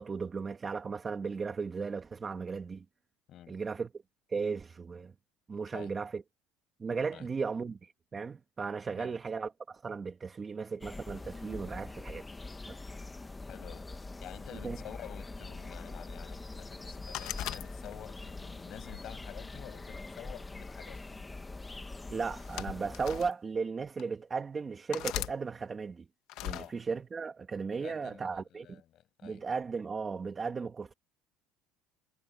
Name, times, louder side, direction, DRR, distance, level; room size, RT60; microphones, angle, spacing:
voice 1, 0.0-2.8 3.5-3.9 4.3-5.1 5.5-6.2 6.8-12.2 12.7-12.8 14.6-14.8 22.1-26.1 26.4-28.8 29.2-30.9, right 5 dB, 20° right, 2.0 m, -36 dB
voice 2, 3.3-3.6 5.7-5.9 7.1-7.3 8.9-9.2 13.5-21.2 26.5-26.8 27.7-29.5, left 12 dB, 45° left, 7.9 m, -49 dB
sound 1, 10.8-23.3, left 2 dB, 10° left, 1.3 m, -44 dB
sound 2, 17.1-18.2 18.8-20.0 21.0-21.2 22.2-23.3 24.0-24.1 24.9-25.4 26.3-26.7, left 16 dB, 60° left, 1.3 m, -39 dB
cardioid pair, 135°, 0 cm